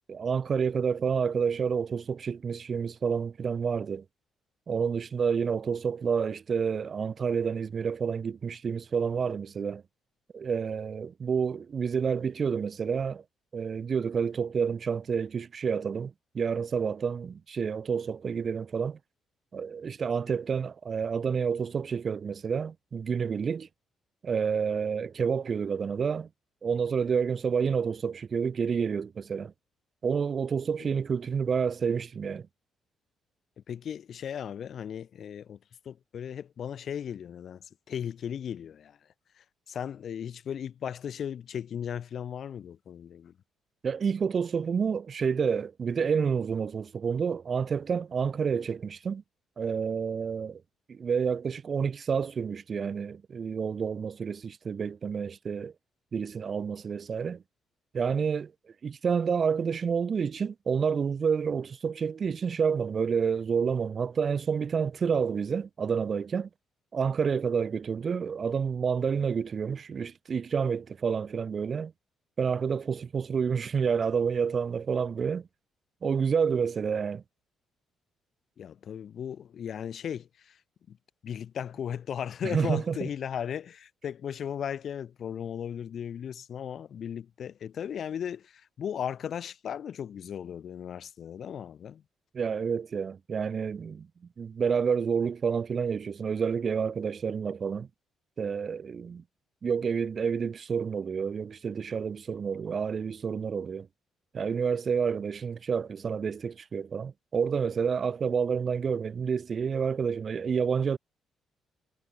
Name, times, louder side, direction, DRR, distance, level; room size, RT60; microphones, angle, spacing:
voice 1, 0.1-4.0 4.7-9.8 10.3-13.2 13.5-19.0 19.5-23.7 24.2-26.3 26.6-29.5 30.0-32.5 43.8-49.2 49.6-50.6 50.9-55.7 56.1-57.4 57.9-58.5 58.8-66.5 66.9-71.9 72.4-75.5 76.0-77.2 82.4-83.1 92.3-94.1 94.4-97.9 98.4-99.2 99.6-103.9 104.3-111.0, right 6 dB, 45° right, 0.4 m, -29 dB
voice 2, 33.7-35.6 35.8-39.0 39.7-43.3 78.6-80.6 80.9-81.0 81.2-92.0, left 8 dB, 60° left, 1.2 m, -36 dB
cardioid pair, 90°, 0 cm